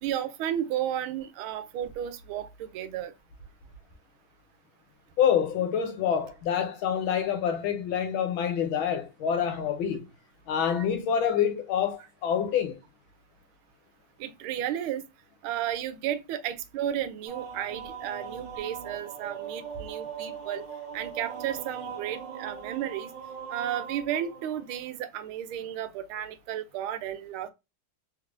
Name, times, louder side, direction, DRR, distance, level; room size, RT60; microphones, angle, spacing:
voice 1, 0.0-3.1 14.2-15.0 15.4-20.6 20.9-23.1 23.5-27.5, right 10 dB, 80° right, 1.4 m, -33 dB
voice 2, 5.2-10.0 10.5-12.8, left 8 dB, 75° left, 1.5 m, -27 dB
sound 1, 17.3-24.9, right 7 dB, 65° right, 1.6 m, -40 dB
3.5 x 3.3 x 2.5 m
omnidirectional pair, 2.3 m